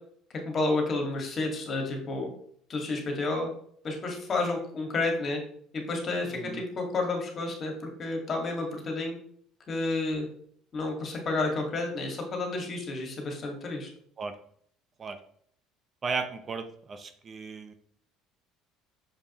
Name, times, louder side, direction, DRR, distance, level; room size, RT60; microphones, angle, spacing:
voice 1, 0.5-2.3 2.7-3.5 3.8-5.4 5.7-7.7 8.0-9.2 9.7-10.3 10.7-13.9, left 2 dB, 40° left, 2 dB, 2.0 m, -30 dB
voice 2, 6.3-6.6 14.2-14.3 15.0-15.2 16.0-17.7, right 4 dB, 35° right, 8 dB, 0.7 m, -35 dB
6.5 x 5.3 x 3.0 m, 0.63 s
hypercardioid pair, 75°, 0 cm